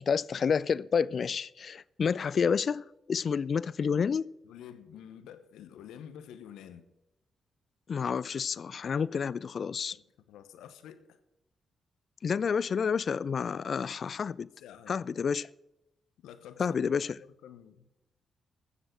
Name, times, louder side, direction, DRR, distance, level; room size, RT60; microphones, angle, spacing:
voice 1, 0.0-4.3 7.9-10.0 12.2-14.5 14.9-15.5 16.6-17.2, left 6 dB, 55° left, 0.4 m, -29 dB
voice 2, 4.4-6.8 9.9-11.2 13.4-13.6 14.6-15.0 16.2-16.7 17.2-17.9, left 9 dB, 75° left, 0.9 m, -49 dB
15.0 x 7.5 x 6.1 m
hypercardioid pair, 40°, 0 cm